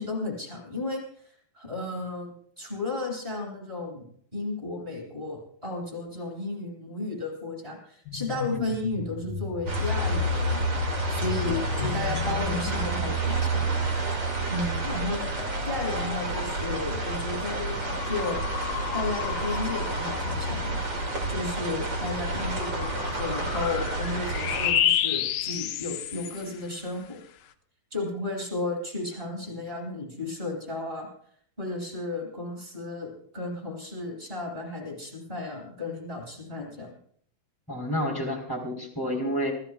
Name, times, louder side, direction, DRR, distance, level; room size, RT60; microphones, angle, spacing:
voice 1, 0.0-10.7 11.1-14.1 14.5-15.3 15.6-18.4 18.9-20.8 21.3-27.2 27.9-31.1 31.6-36.9, left 2 dB, 10° right, -1 dB, 6.9 m, -34 dB
sound 1, 8.1-14.1 14.6-26.7, left 8 dB, 90° left, 3.6 m, -33 dB
sound 2, 9.7-24.7, right 1 dB, 30° right, 2.1 m, -29 dB
voice 2, 37.7-39.5, equal, 5° left, -1 dB, 2.8 m, -30 dB
27.5 x 17.0 x 2.5 m, 0.63 s
omnidirectional pair, 6.0 m